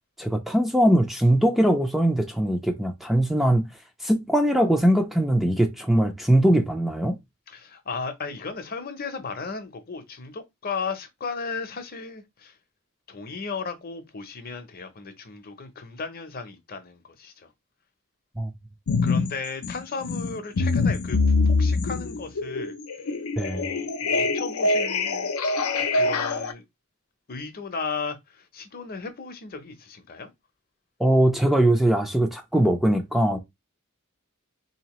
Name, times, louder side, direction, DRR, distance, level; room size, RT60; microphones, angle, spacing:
voice 1, 0.2-3.7 4.0-7.2 18.4-18.5 23.4-23.6 31.0-33.4, right 1 dB, ahead, 0.4 m, -21 dB
voice 2, 7.5-12.6 13.1-17.5 19.0-21.2 21.5-22.7 23.5-25.3 25.9-26.6 27.3-30.3, left 4 dB, 45° left, 0.7 m, -35 dB
sound 1, 18.9-19.3 19.6-26.5, left 3 dB, 80° left, 0.6 m, -24 dB
3.9 x 2.8 x 3.0 m
head